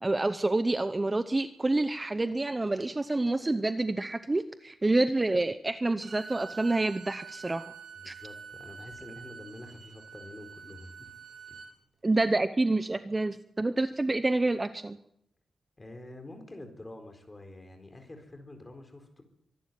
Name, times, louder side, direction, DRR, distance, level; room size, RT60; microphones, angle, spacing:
voice 1, 0.0-7.6 8.0-8.1 12.0-15.0, right 2 dB, 20° right, 11 dB, 0.7 m, -28 dB
Bowed string instrument, 6.0-11.7, right 6 dB, 85° right, 7.3 m, -46 dB
voice 2, 7.9-11.1 11.5-11.6 15.8-19.2, left 1 dB, 20° left, 5 dB, 4.2 m, -47 dB
24.5 x 12.0 x 9.3 m, 0.78 s
wide cardioid pair, 140°, 0 cm